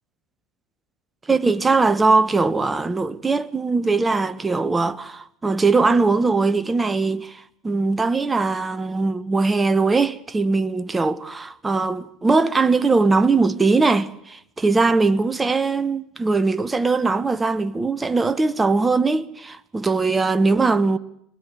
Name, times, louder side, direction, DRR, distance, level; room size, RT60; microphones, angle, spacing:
voice 1, 1.3-21.0, right 3 dB, 15° right, 1.4 m, -20 dB
24.5 x 19.0 x 9.7 m
figure-of-eight pair, 75°, 0 cm